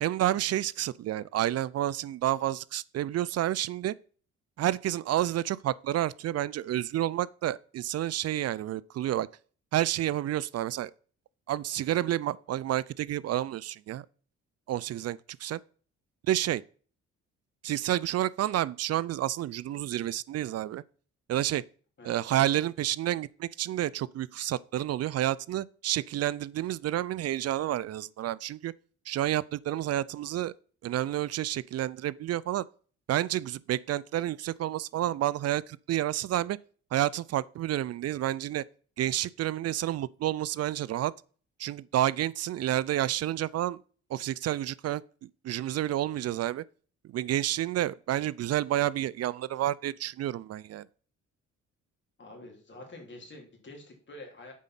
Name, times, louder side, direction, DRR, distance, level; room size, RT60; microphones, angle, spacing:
voice 1, 0.0-3.9 4.6-9.3 9.7-10.9 11.5-14.1 14.7-15.6 16.2-16.6 17.6-20.8 21.3-21.6 22.0-28.7 29.1-30.5 30.8-32.7 33.1-36.6 36.9-38.6 39.0-41.1 41.6-43.8 44.1-46.6 47.0-50.9, right 13 dB, 55° right, 0.4 m, -30 dB
voice 2, 52.2-54.5, left 2 dB, 40° left, 3.4 m, -47 dB
7.4 x 5.1 x 5.8 m
cardioid pair, 90°, 30 cm